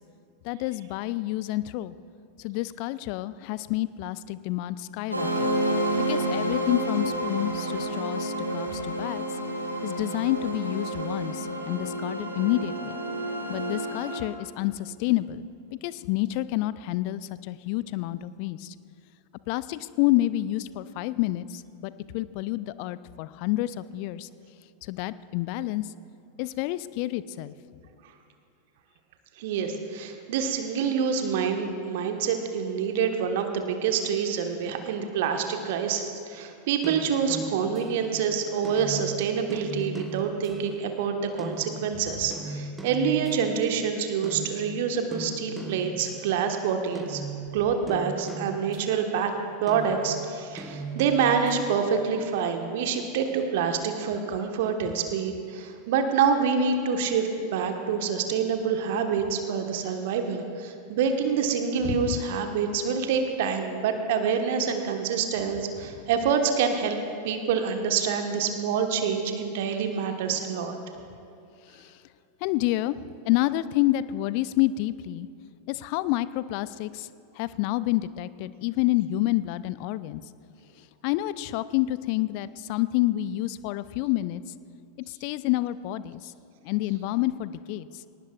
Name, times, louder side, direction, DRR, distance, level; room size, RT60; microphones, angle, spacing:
voice 1, 0.4-1.9 2.4-5.5 6.0-9.2 9.8-13.0 13.5-18.7 19.5-24.3 24.8-25.9 26.4-27.5 61.8-62.2 71.7-72.0 72.4-75.3 75.7-77.1 77.4-80.2 81.0-84.4 85.1-86.3 86.6-87.9, left 16 dB, 45° left, 16 dB, 0.4 m, -28 dB
sound 1, 5.1-14.2, right 1 dB, 85° right, 2.2 m, -29 dB
voice 2, 29.4-47.2 47.5-49.3 49.6-67.0 67.2-70.8, right 6 dB, 50° right, 5 dB, 1.3 m, -27 dB
sound 2, 36.8-44.0 44.2-46.6 46.9-49.2 49.7-51.8, right 3 dB, 10° right, 0.9 m, -39 dB
21.5 x 18.5 x 2.4 m, 2.7 s
figure-of-eight pair, 90°, 0 cm